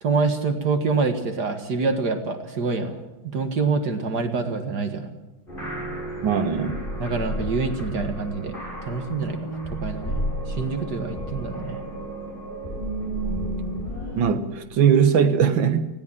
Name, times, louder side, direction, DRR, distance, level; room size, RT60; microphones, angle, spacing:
voice 1, 0.0-3.0 3.3-5.1 7.0-10.1 10.5-11.8, right 4 dB, 60° right, 2.2 m, -26 dB
sound 1, 5.5-14.2, right 1 dB, 25° left, 7.3 m, -32 dB
voice 2, 6.2-6.8 14.2-15.9, right 7 dB, 90° right, 2.0 m, -20 dB
19.5 x 16.5 x 8.8 m
omnidirectional pair, 2.0 m